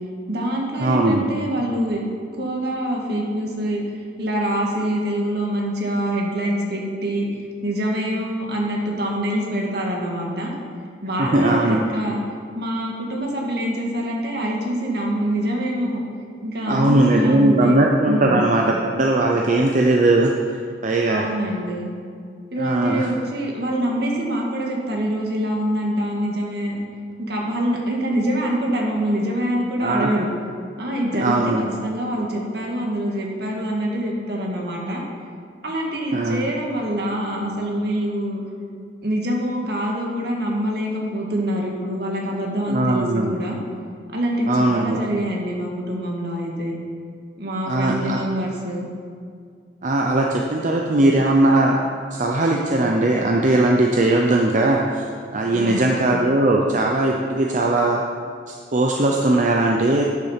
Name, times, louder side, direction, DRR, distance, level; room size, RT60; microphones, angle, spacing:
voice 1, 0.3-2.0 2.4-3.8 4.2-7.3 7.6-10.5 11.0-12.2 12.5-16.0 16.4-17.8 18.0-18.4 21.1-21.9 22.5-26.8 27.2-30.3 30.8-35.0 35.6-38.4 39.0-43.6 44.1-46.8 47.4-48.9 55.5-55.9, equal, 65° right, -1 dB, 1.8 m, -25 dB
voice 2, 0.8-1.2 11.2-11.9 16.7-20.3 20.8-21.3 22.6-23.1 29.8-30.1 31.2-31.7 36.1-36.5 42.7-43.3 44.5-45.0 47.7-48.2 49.8-51.8 52.1-55.1 55.3-58.0 58.5-60.0, right 2 dB, 45° right, 0 dB, 0.7 m, -19 dB
9.7 x 7.3 x 5.7 m, 2.2 s
head